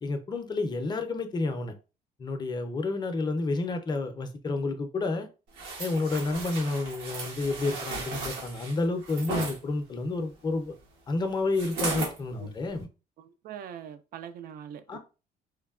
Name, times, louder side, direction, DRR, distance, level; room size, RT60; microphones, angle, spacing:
voice 1, 0.0-1.7 2.2-5.3 5.8-10.7 11.1-12.9 14.9-15.0, left 3 dB, 25° left, 0.5 m, -30 dB
sound 1, 5.6-9.6 11.5-12.2 12.7-12.8, right 3 dB, 85° right, 1.1 m, -35 dB
voice 2, 13.2-15.0, right 9 dB, 60° right, 0.5 m, -42 dB
3.1 x 2.2 x 2.4 m
cardioid pair, 110°, 17 cm